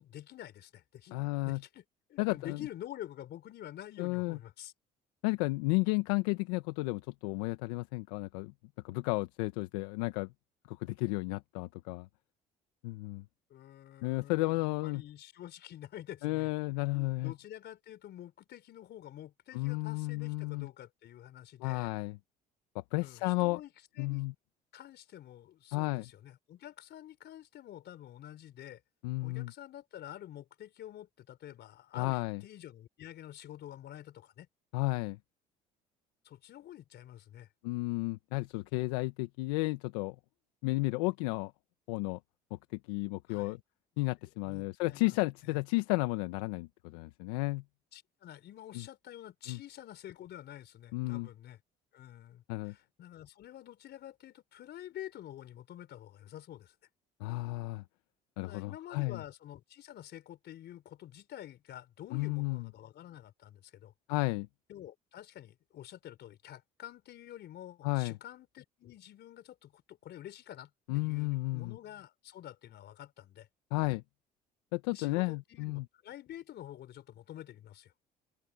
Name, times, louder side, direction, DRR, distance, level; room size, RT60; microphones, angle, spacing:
voice 1, 0.0-1.2 1.4-1.8 2.1-4.7 13.5-16.5 16.8-21.9 23.0-24.2 24.7-28.8 29.2-34.5 36.2-37.5 43.3-43.6 44.4-45.2 45.4-45.6 47.9-51.6 51.9-56.8 58.4-63.9 64.7-73.5 74.9-77.9, left 12 dB, 60° left, 4.2 m, -48 dB
voice 2, 1.1-1.6 2.2-2.6 4.0-4.4 5.2-8.5 8.8-10.3 10.7-12.1 12.8-13.2 14.0-15.0 16.2-17.3 19.5-20.7 21.6-22.2 22.7-23.6 24.0-24.3 25.7-26.0 29.0-29.5 31.9-32.4 34.7-35.2 37.6-40.1 40.6-41.5 41.9-42.2 42.5-42.6 42.9-43.6 44.0-47.6 48.7-48.8 49.5-49.6 50.9-51.3 52.5-52.7 57.2-57.8 58.4-59.2 62.1-62.7 64.1-64.5 67.8-68.2 70.9-71.8 73.7-74.0 74.7-75.8, left 23 dB, 80° left, 1.3 m, -33 dB
hypercardioid pair, 65°, 20 cm